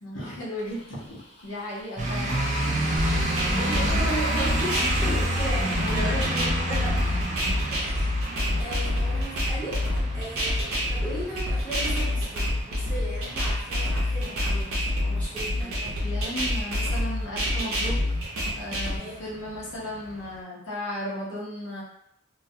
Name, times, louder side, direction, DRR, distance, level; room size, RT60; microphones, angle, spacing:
voice 1, 0.0-2.4 5.0-5.2 5.8-6.5 6.9-7.1 7.4-7.7 15.5-18.0 18.5-21.8, equal, 65° left, -6 dB, 0.7 m, -35 dB
sound 1, 0.6-6.0, left 4 dB, 30° left, 0.5 m, -41 dB
sound 2, 2.0-20.4, right 1 dB, 35° right, 0.4 m, -31 dB
sound 3, 3.0-19.0, left 1 dB, 80° right, 0.6 m, -27 dB
voice 2, 3.2-7.0 7.7-8.2 8.6-15.8 18.9-19.1, right 1 dB, 5° left, -11 dB, 0.9 m, -36 dB
2.3 x 2.1 x 2.7 m, 0.77 s
head